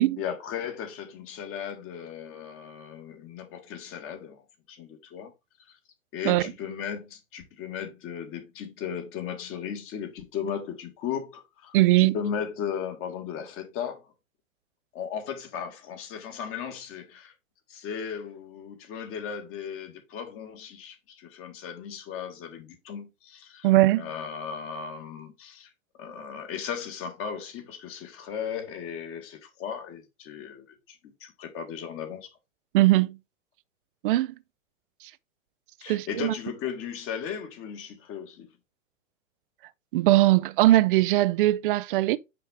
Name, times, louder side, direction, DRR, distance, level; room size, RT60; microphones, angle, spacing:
voice 1, 0.2-5.3 5.6-5.8 6.1-14.1 14.9-17.3 17.7-23.7 24.0-25.7 26.0-32.3 35.8-38.5, left 7 dB, 30° left, 1.6 m, -36 dB
voice 2, 11.7-12.2 23.6-24.1 32.7-33.2 34.0-34.3 35.9-36.3 39.9-42.2, right 17 dB, 40° right, 0.4 m, -20 dB
5.7 x 5.2 x 3.4 m
hypercardioid pair, 130°, 42 cm